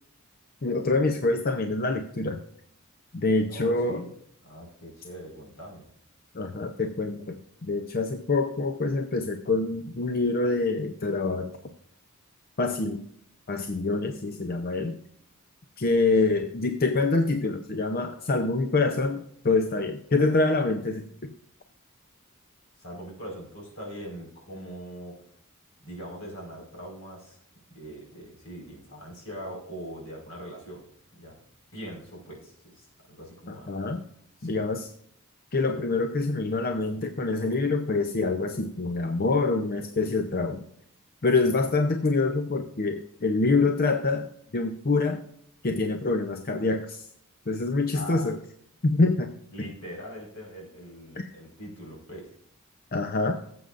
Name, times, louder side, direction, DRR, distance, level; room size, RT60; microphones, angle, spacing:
voice 1, 0.6-2.4 3.1-4.0 6.3-11.5 12.6-13.0 13.5-15.0 15.8-21.0 33.5-34.0 34.4-34.9 35.5-40.6 41.2-44.3 44.5-45.2 45.6-47.1 47.5-48.4 48.8-49.3 49.6-49.7 52.9-53.4, left 3 dB, 45° left, 6 dB, 0.6 m, -26 dB
voice 2, 3.5-4.1 4.4-5.9 16.3-16.4 22.8-25.2 25.8-27.4 27.7-30.9 31.2-31.4 31.7-33.8 34.4-34.7 41.4-41.6 47.9-48.3 49.5-52.3, equal, 75° left, -1 dB, 4.6 m, -42 dB
18.0 x 7.8 x 2.5 m, 0.68 s
head